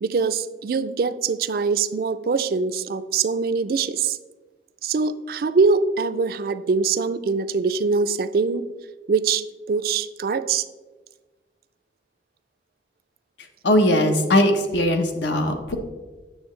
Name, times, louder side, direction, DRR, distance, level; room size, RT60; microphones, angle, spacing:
voice 1, 0.0-4.2 4.8-8.7 9.1-10.7, right 4 dB, 55° right, 12 dB, 0.3 m, -23 dB
voice 2, 13.6-15.8, left 1 dB, 80° left, 5 dB, 0.9 m, -19 dB
8.7 x 6.6 x 3.2 m, 1.3 s
head